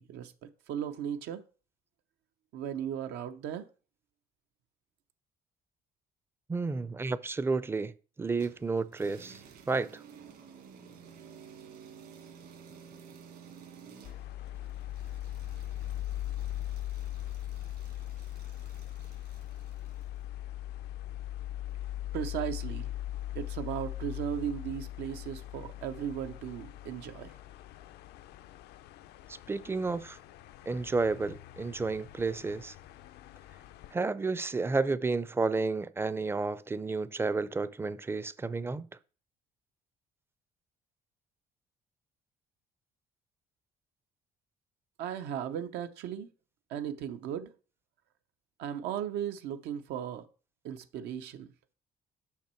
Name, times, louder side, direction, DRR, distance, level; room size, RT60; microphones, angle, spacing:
voice 1, 0.0-1.4 2.5-3.7 22.1-22.9 23.3-27.4 45.0-46.3 46.7-47.5 48.6-50.3 50.6-51.5, right 9 dB, 85° right, 0.7 m, -36 dB
voice 2, 6.5-7.9 8.2-9.4 9.7-9.9 29.3-30.2 30.7-32.7 33.9-38.9, right 3 dB, 15° right, 0.4 m, -31 dB
sound 1, 8.4-20.2, right 6 dB, 65° right, 1.9 m, -53 dB
sound 2, 14.0-33.9, left 13 dB, 75° left, 0.5 m, -40 dB
6.1 x 5.8 x 4.4 m
cardioid pair, 110°, 17 cm